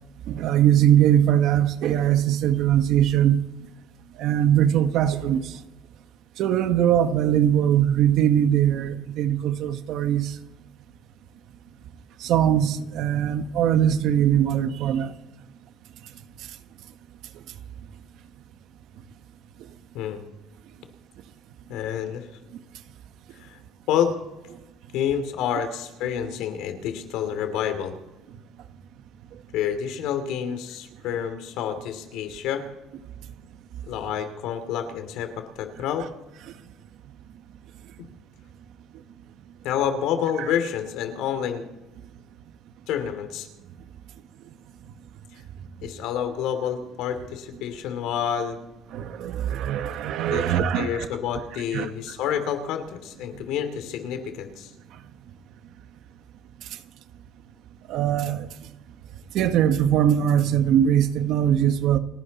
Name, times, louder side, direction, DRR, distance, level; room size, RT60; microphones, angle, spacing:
voice 1, 0.3-3.4 4.2-5.4 6.4-10.3 12.2-15.1 48.9-51.1 51.7-51.9 57.9-58.5 59.3-62.0, right 10 dB, 65° right, 1.2 m, -21 dB
voice 2, 21.7-22.3 23.4-23.6 23.9-24.1 24.9-28.0 29.5-32.6 33.9-36.1 38.0-38.1 39.6-41.6 42.9-43.5 45.8-48.6 50.3-54.7, left 9 dB, 75° left, 2.7 m, -28 dB
29.5 x 11.5 x 4.2 m
cardioid pair, 150°, 0 cm